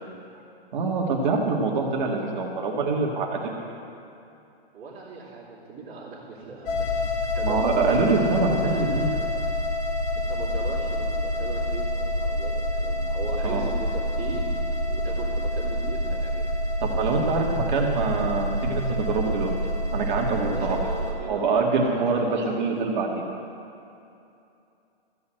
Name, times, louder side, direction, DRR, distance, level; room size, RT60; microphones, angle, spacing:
voice 1, 0.7-3.6 7.4-9.3 13.4-13.6 16.8-19.5 19.9-20.8 21.3-23.2, right 4 dB, 50° right, 0 dB, 1.9 m, -25 dB
voice 2, 4.7-7.0 7.3-8.7 10.1-14.5 14.9-16.5 20.3-22.6, right 4 dB, 20° right, -14 dB, 2.7 m, -38 dB
sound 1, 6.7-21.1, left 1 dB, 20° left, 1.5 m, -27 dB
14.5 x 5.6 x 8.9 m, 2.7 s
hypercardioid pair, 155°, 31 cm